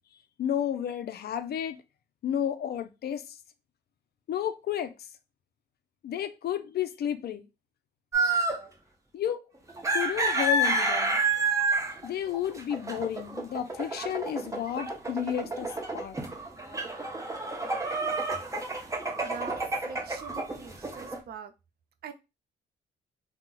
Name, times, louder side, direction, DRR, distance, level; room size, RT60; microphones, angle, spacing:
voice 1, 0.4-1.8 2.2-3.3 4.3-4.9 6.0-7.5 9.1-9.4 9.9-11.2 12.0-16.2, left 10 dB, 55° left, 0.4 m, -32 dB
sound 1, 8.1-8.7 9.7-21.2, right 2 dB, 15° right, 0.6 m, -29 dB
voice 2, 19.2-21.5 22.0-22.1, right 6 dB, 55° right, 0.5 m, -43 dB
2.3 x 2.1 x 3.8 m
cardioid pair, 90°, 20 cm